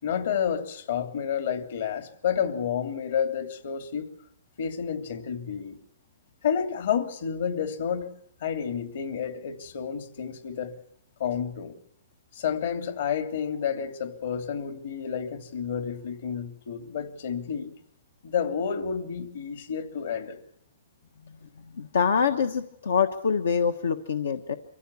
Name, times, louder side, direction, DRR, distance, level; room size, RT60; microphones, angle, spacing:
voice 1, 0.0-4.1 4.6-5.8 6.4-8.1 8.4-10.8 11.2-11.7 12.3-17.7 18.2-20.4, left 7 dB, 60° left, 8 dB, 3.0 m, -30 dB
voice 2, 21.8-24.6, left 6 dB, 90° left, 9 dB, 1.3 m, -25 dB
25.0 x 15.5 x 8.3 m, 0.70 s
hypercardioid pair, 160°, 0 cm